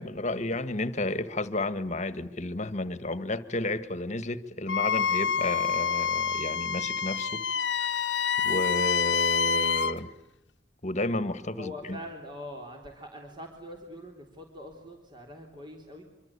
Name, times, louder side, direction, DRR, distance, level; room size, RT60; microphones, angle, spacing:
voice 1, 0.0-7.4 8.4-10.1 10.8-12.0, left 2 dB, 40° left, 1.6 m, -32 dB
Wind instrument woodwind instrument, 4.7-10.0, left 6 dB, 75° left, 1.2 m, -27 dB
voice 2, 11.6-16.0, left 1 dB, 25° right, 3.5 m, -43 dB
26.0 x 25.5 x 8.5 m
head